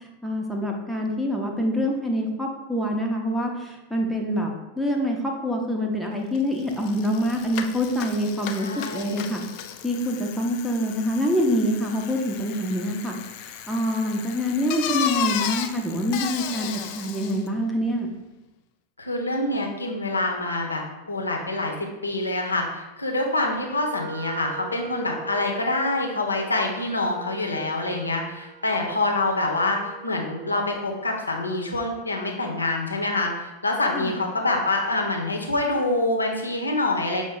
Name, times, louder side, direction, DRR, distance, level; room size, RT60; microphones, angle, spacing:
voice 1, 0.2-8.7 8.9-9.4 9.8-13.2 13.4-16.7 16.9-18.1 33.9-34.2, equal, ahead, 0 dB, 0.6 m, -26 dB
Bicycle, 6.3-6.4 6.7-17.5, left 9 dB, 45° left, 0.3 m, -34 dB
voice 2, 8.5-9.3 19.0-37.2, left 2 dB, 80° left, 2 dB, 0.7 m, -26 dB
Wind instrument woodwind instrument, 23.7-30.4, right 4 dB, 45° right, 0.6 m, -41 dB
5.9 x 2.0 x 3.8 m, 1.0 s
figure-of-eight pair, 90°, 0 cm